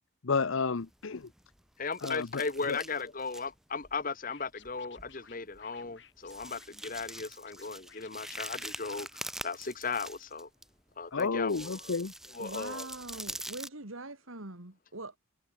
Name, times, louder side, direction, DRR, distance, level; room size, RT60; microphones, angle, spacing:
voice 1, 0.2-1.3 2.0-2.8 11.1-12.1, left 4 dB, 75° left, 0.7 m, -31 dB
sound 1, 0.8-1.6 1.9-3.5 3.8-4.0 4.7-4.8 5.0-5.2 5.5-5.6 6.2-10.6 11.2-13.7, right 1 dB, ahead, 0.7 m, -44 dB
voice 2, 1.8-10.5 11.0-12.0 12.3-12.9, left 4 dB, 40° left, 1.3 m, -37 dB
Scratching (performance technique), 4.2-9.7, left 6 dB, 60° left, 7.3 m, -58 dB
voice 3, 12.4-15.2, right 2 dB, 80° right, 3.0 m, -43 dB
head